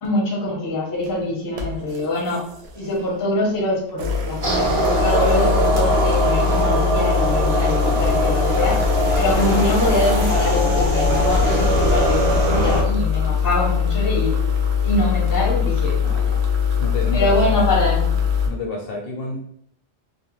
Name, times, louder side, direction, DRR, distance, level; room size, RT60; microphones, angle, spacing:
voice 1, 0.0-2.4 2.8-8.8 9.1-14.4 14.8-16.4 17.1-18.1, left 1 dB, 25° left, -2 dB, 0.5 m, -24 dB
sound 1, 0.9-1.1 1.6-3.1 3.9-18.5, left 7 dB, 70° right, 0.8 m, -22 dB
sound 2, 4.4-12.8, right 2 dB, 40° right, 0.6 m, -21 dB
voice 2, 16.8-17.7 18.4-19.4, left 3 dB, 65° left, 0 dB, 0.7 m, -29 dB
2.4 x 2.1 x 2.9 m, 0.67 s
omnidirectional pair, 1.2 m